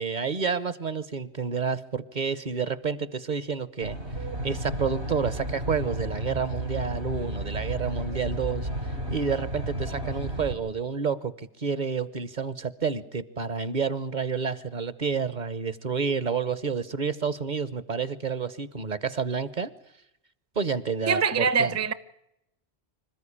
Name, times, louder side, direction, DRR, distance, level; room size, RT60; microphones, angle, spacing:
voice 1, 0.0-4.0 4.4-8.7 9.1-19.7 20.6-21.7, right 5 dB, 45° right, 1.1 m, -29 dB
Aircraft, 3.8-10.5, right 1 dB, 85° right, 4.1 m, -33 dB
voice 2, 21.1-21.9, right 5 dB, 15° right, 0.7 m, -23 dB
26.0 x 14.0 x 10.0 m
omnidirectional pair, 1.1 m